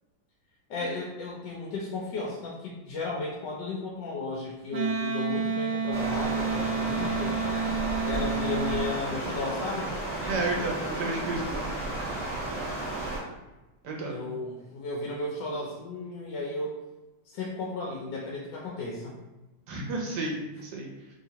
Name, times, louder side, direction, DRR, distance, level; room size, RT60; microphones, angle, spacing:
voice 1, 0.7-7.4 8.0-9.9 14.0-16.8 17.2-19.2, left 3 dB, 70° left, -3 dB, 1.1 m, -34 dB
Wind instrument woodwind instrument, 4.7-8.9, right 5 dB, 90° right, 1.4 m, -29 dB
Stream, 5.9-13.2, right 2 dB, 10° right, 1.2 m, -33 dB
voice 2, 10.2-11.6 13.8-14.2 19.7-20.9, right 2 dB, 65° right, -1 dB, 1.1 m, -32 dB
3.3 x 2.8 x 2.7 m, 1.1 s
omnidirectional pair, 2.2 m